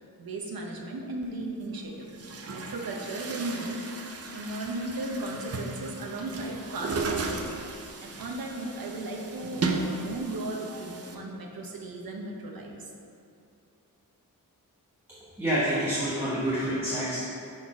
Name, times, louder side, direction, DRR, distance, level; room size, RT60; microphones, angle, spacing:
voice 1, 0.2-2.1 2.5-3.8 4.3-7.5 8.0-12.8, right 2 dB, 80° right, 1 dB, 0.8 m, -36 dB
Chatter / Gurgling / Tap, 1.2-1.3 2.0-11.1, right 3 dB, 45° right, 0.5 m, -35 dB
voice 2, 15.4-17.2, equal, 5° right, -10 dB, 1.0 m, -27 dB
6.3 x 4.0 x 4.8 m, 2.5 s
wide cardioid pair, 155°, 35 cm